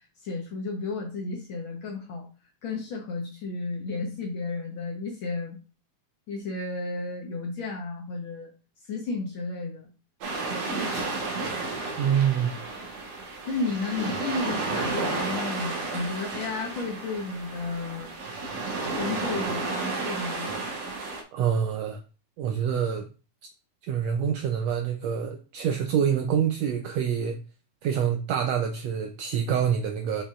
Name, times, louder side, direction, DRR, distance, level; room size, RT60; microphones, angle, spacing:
voice 1, 0.2-2.3 2.6-5.6 6.3-8.5 8.9-9.9 13.5-18.1 18.9-20.5, left 3 dB, 80° left, 1.1 m, -33 dB
sound 1, 10.2-21.2, right 3 dB, 60° right, 2.3 m, -32 dB
voice 2, 12.0-12.6 21.3-22.0 22.4-23.1 23.9-27.4 27.8-30.2, right 8 dB, 85° right, 1.5 m, -26 dB
7.1 x 5.4 x 2.5 m
omnidirectional pair, 3.7 m